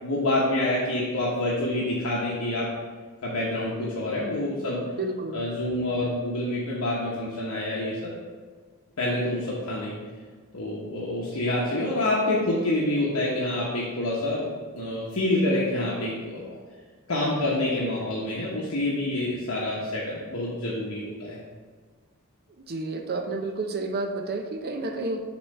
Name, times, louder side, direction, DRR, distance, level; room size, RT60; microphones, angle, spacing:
voice 1, 0.0-2.7 3.2-4.8 5.3-8.1 9.0-9.9 10.5-14.5 14.7-16.6 17.1-21.4, left 1 dB, 70° left, -5 dB, 1.0 m, -27 dB
voice 2, 4.9-5.5 22.7-25.2, right 2 dB, 45° right, 5 dB, 0.6 m, -30 dB
7.1 x 3.0 x 5.4 m, 1.5 s
head